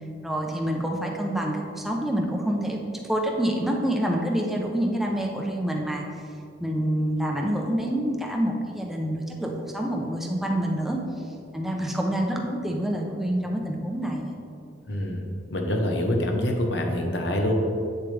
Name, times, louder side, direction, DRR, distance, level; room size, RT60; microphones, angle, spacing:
voice 1, 0.2-6.0 6.6-11.0 11.5-14.4, right 1 dB, ahead, 0 dB, 0.8 m, -27 dB
voice 2, 14.9-15.2 15.5-17.5, left 1 dB, 70° left, 2 dB, 1.1 m, -25 dB
8.4 x 7.1 x 3.4 m, 2.4 s
head